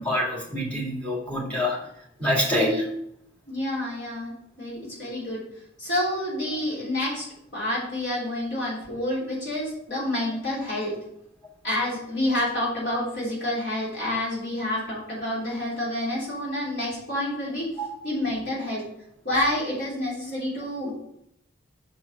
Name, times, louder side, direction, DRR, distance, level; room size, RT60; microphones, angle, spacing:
voice 1, 0.0-1.8 2.2-2.9 17.8-17.9, left 1 dB, 10° left, -4 dB, 2.1 m, -25 dB
voice 2, 3.5-5.4 5.8-7.2 7.5-10.9 11.6-17.7 18.0-18.8 19.2-20.9, left 1 dB, 60° left, -7 dB, 3.4 m, -28 dB
6.9 x 4.7 x 5.4 m, 0.75 s
head